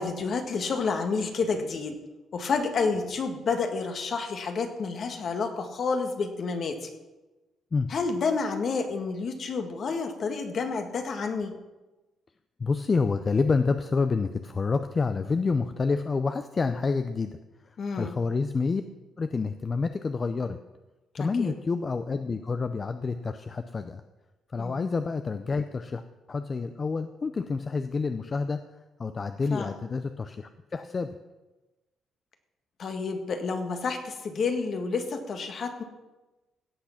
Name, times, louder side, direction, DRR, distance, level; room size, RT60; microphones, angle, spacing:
voice 1, 0.0-2.0 2.3-6.9 7.9-11.5 17.8-18.1 21.1-21.5 24.6-24.8 29.5-29.7 32.8-35.8, left 4 dB, 55° left, 6 dB, 1.6 m, -29 dB
voice 2, 12.6-17.4 17.6-18.8 19.2-20.6 21.2-24.0 24.5-26.0 26.3-28.6 29.0-31.1, left 4 dB, 35° left, 9 dB, 0.6 m, -28 dB
17.0 x 6.0 x 5.8 m, 1.1 s
cardioid pair, 90°, 0 cm